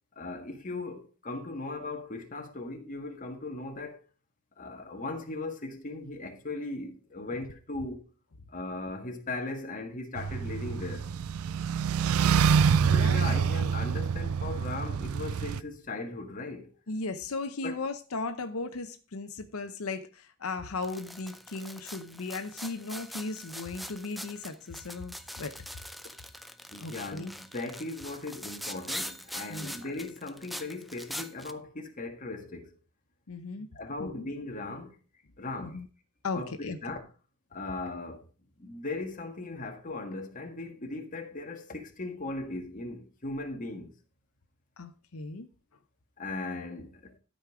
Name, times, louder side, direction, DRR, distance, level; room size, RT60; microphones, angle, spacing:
voice 1, 0.1-4.0 4.6-8.0 8.5-11.1 12.9-16.7 17.6-17.8 26.7-32.7 33.7-34.9 35.4-35.8 36.3-37.1 37.5-38.2 38.6-43.9 46.2-47.1, left 2 dB, 40° left, 1.7 m, -38 dB
sound 1, 10.2-15.6, right 6 dB, 85° right, 0.4 m, -26 dB
voice 2, 12.8-13.5 16.9-25.5 26.8-27.3 29.5-29.7 33.3-33.7 34.0-34.3 35.6-35.9 36.2-36.8 44.8-45.5, left 3 dB, 90° left, 0.8 m, -37 dB
sound 2, 20.8-31.5, equal, ahead, 0.5 m, -42 dB
12.5 x 5.3 x 4.8 m
head